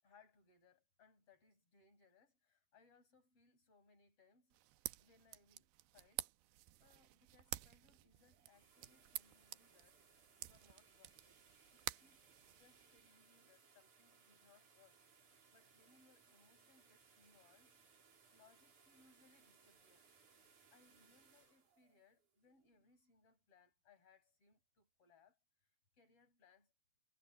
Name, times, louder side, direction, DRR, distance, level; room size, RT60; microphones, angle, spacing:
voice 1, 0.0-4.6 5.0-10.0 10.4-11.4 11.7-12.2 12.5-17.8 18.3-20.1 20.4-25.7 25.9-26.7, left 4 dB, 35° left, 7.0 m, -71 dB
sound 1, 4.5-13.1, right 16 dB, 80° right, 2.5 m, -51 dB
sound 2, 8.1-23.0, right 5 dB, 50° right, 5.3 m, -69 dB
omnidirectional pair, 4.8 m